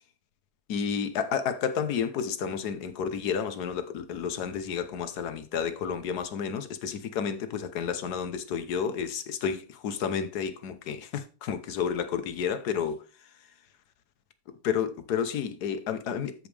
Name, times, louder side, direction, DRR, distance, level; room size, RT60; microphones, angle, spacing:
voice 1, 0.7-13.0 14.6-16.3, left 7 dB, 75° left, 1.4 m, -31 dB
13.0 x 5.3 x 3.3 m
omnidirectional pair, 1.7 m